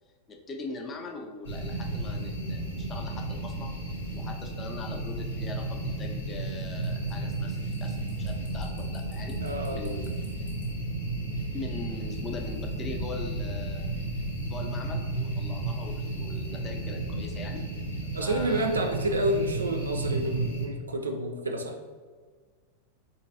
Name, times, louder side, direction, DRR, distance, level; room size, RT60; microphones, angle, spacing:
voice 1, 0.3-3.7 4.1-9.4 9.7-10.1 11.5-14.0 14.4-17.7 18.2-18.7, left 3 dB, 25° left, 3 dB, 0.4 m, -41 dB
sound 1, 1.4-20.7, right 2 dB, 70° left, 0.8 m, -33 dB
voice 2, 9.4-10.0 18.1-21.8, right 1 dB, 75° right, 4 dB, 0.3 m, -29 dB
3.8 x 2.8 x 2.7 m, 1.5 s
figure-of-eight pair, 90°, 0 cm